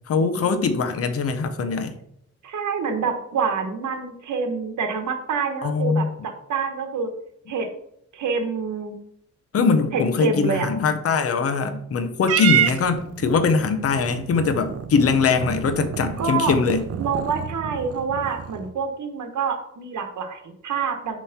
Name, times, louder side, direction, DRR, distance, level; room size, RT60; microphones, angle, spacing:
voice 1, 0.1-1.9 5.6-6.1 9.5-16.8, left 5 dB, 55° left, 9 dB, 0.7 m, -22 dB
voice 2, 2.4-7.1 7.5-7.7 8.1-8.9 9.9-10.7 16.2-16.5 17.0-21.2, right 5 dB, 80° right, 5 dB, 1.0 m, -27 dB
Purr / Meow, 12.2-18.7, right 9 dB, 55° right, 0.5 m, -28 dB
6.7 x 3.1 x 5.7 m, 0.72 s
wide cardioid pair, 165°, 29 cm